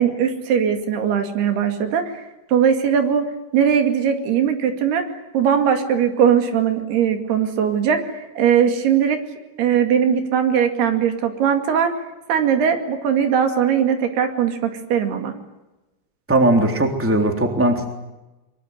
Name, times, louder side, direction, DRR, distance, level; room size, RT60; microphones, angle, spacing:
voice 1, 0.0-2.2 2.5-3.3 3.5-5.0 5.3-9.2 9.6-11.9 12.3-15.3, right 8 dB, 75° right, 6 dB, 4.4 m, -19 dB
voice 2, 16.3-17.9, right 1 dB, 5° right, 4 dB, 2.8 m, -18 dB
24.0 x 24.0 x 9.5 m, 1.0 s
omnidirectional pair, 4.6 m